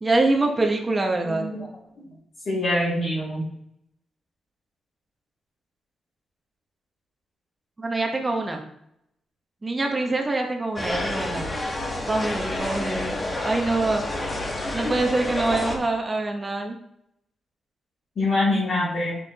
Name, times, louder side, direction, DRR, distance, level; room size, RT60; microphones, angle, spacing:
voice 1, 0.0-1.4 7.8-8.6 9.6-11.5 12.1-13.2 13.4-14.1 14.7-16.8, right 2 dB, 25° right, 2 dB, 1.1 m, -25 dB
voice 2, 1.2-1.7 2.5-3.5 14.8-14.9 18.2-19.2, left 1 dB, 55° left, -8 dB, 2.3 m, -24 dB
sound 1, 10.8-15.8, left 1 dB, 25° left, 1.3 m, -29 dB
6.4 x 6.0 x 2.9 m, 0.74 s
cardioid pair, 90°, 0 cm